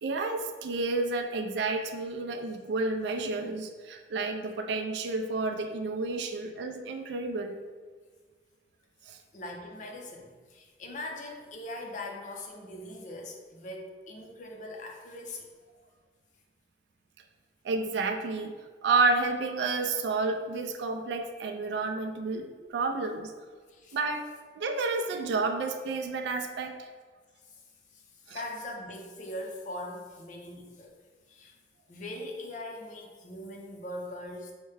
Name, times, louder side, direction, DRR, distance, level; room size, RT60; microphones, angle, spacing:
voice 1, 0.0-7.6 9.1-9.2 17.6-18.5 18.8-23.3 23.9-24.3 24.6-26.9 28.3-28.4, right 3 dB, 70° right, 5 dB, 0.3 m, -30 dB
voice 2, 9.3-15.5 23.7-24.0 27.4-27.6 27.9-30.9 31.3-31.6 31.9-34.5, left 1 dB, 45° left, 1 dB, 0.5 m, -41 dB
5.6 x 2.1 x 3.2 m, 1.5 s
head